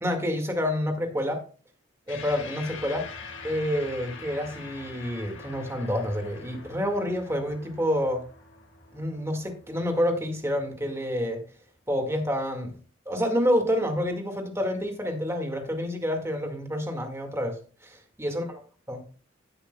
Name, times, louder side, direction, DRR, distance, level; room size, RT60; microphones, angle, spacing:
voice 1, 0.0-1.4 2.1-3.1 3.4-8.2 8.9-11.4 11.9-12.7 13.1-18.6 18.9-19.0, equal, 15° right, 4 dB, 1.9 m, -28 dB
sound 1, 2.1-10.8, left 4 dB, 70° left, 1.5 m, -44 dB
17.0 x 8.0 x 2.3 m, 0.37 s
head